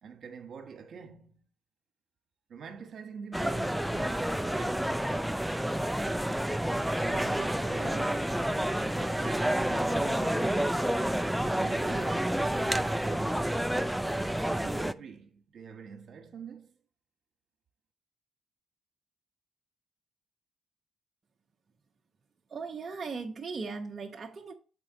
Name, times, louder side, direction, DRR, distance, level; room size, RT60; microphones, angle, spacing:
voice 1, 0.0-1.4 2.5-5.0 7.0-8.3 8.8-10.8 11.3-13.6 14.6-16.7, right 6 dB, 60° right, 1.4 m, -45 dB
sound 1, 3.3-14.9, right 1 dB, 5° right, 0.4 m, -29 dB
voice 2, 22.5-24.5, right 4 dB, 35° right, 0.9 m, -38 dB
7.0 x 5.2 x 3.8 m
cardioid pair, 90°, 0 cm